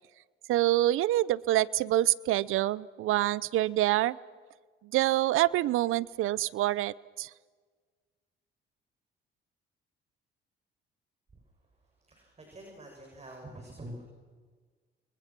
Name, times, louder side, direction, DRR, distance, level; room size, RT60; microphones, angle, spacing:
voice 1, 0.5-4.2 4.8-7.3, right 15 dB, 75° right, 21 dB, 0.8 m, -26 dB
voice 2, 12.1-14.0, right 1 dB, 30° right, 1 dB, 7.5 m, -46 dB
29.5 x 24.5 x 6.2 m, 1.5 s
supercardioid pair, 80°, 21 cm